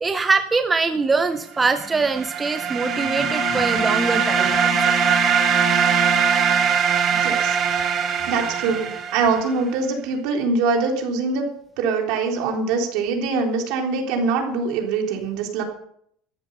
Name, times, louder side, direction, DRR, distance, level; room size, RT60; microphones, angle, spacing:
voice 1, 0.0-4.6, right 4 dB, 15° right, 8 dB, 0.6 m, -22 dB
sound 1, 1.8-9.5, right 7 dB, 30° right, 1.5 m, -21 dB
Wind instrument woodwind instrument, 2.7-6.8, left 10 dB, 35° left, 0.7 m, -31 dB
voice 2, 7.1-7.6 8.3-11.5 11.8-15.6, right 4 dB, 60° right, 1 dB, 3.7 m, -23 dB
14.0 x 11.0 x 6.8 m, 0.69 s
cardioid pair, 170°, 0 cm